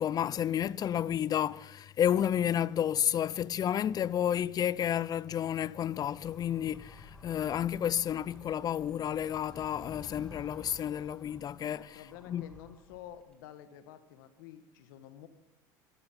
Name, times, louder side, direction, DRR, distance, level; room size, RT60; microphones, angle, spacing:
voice 1, 0.0-12.0 12.3-12.4, left 10 dB, 35° left, 0.5 m, -31 dB
Animal, 5.5-13.3, left 1 dB, 5° left, 2.5 m, -53 dB
voice 2, 11.7-15.3, left 11 dB, 80° left, 1.4 m, -50 dB
13.5 x 12.5 x 5.4 m
supercardioid pair, 100°, 11 cm